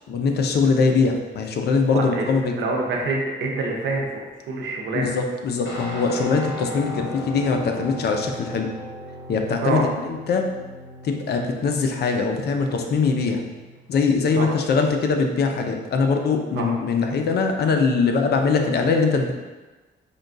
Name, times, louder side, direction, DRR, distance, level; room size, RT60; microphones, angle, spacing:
voice 1, 0.1-2.5 4.9-8.7 9.3-10.5 11.0-13.4 13.9-19.3, left 4 dB, 55° left, 4 dB, 0.5 m, -22 dB
voice 2, 1.8-4.2 4.5-5.1 9.6-9.8 14.4-14.5 16.6-16.7, right 3 dB, 70° right, 0 dB, 0.7 m, -26 dB
Guitar, 5.6-13.8, left 1 dB, 80° left, 1.0 m, -38 dB
5.1 x 2.2 x 2.5 m, 1.2 s
cardioid pair, 90°, 20 cm